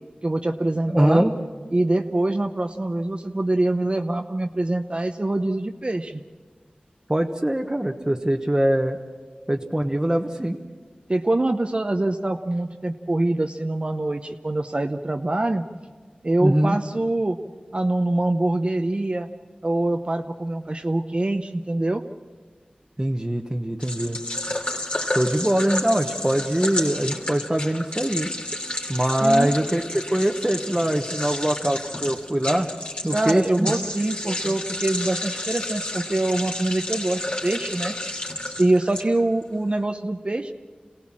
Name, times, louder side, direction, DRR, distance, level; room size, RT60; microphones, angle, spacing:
voice 1, 0.2-1.2 1.7-6.2 11.1-15.6 16.2-17.4 17.7-19.3 19.6-22.0 29.2-29.5 33.1-40.5, right 2 dB, 40° right, 5 dB, 0.8 m, -24 dB
voice 2, 0.9-1.3 7.1-9.0 9.5-10.6 16.4-16.8 23.0-24.2 25.1-28.3 28.9-29.8 30.1-32.7 33.0-33.8 34.2-34.5, right 1 dB, 20° right, 1 dB, 1.1 m, -22 dB
sound 1, 23.8-39.4, left 1 dB, 40° left, 3.0 m, -31 dB
26.5 x 17.5 x 7.5 m, 1.5 s
wide cardioid pair, 50°, 3 cm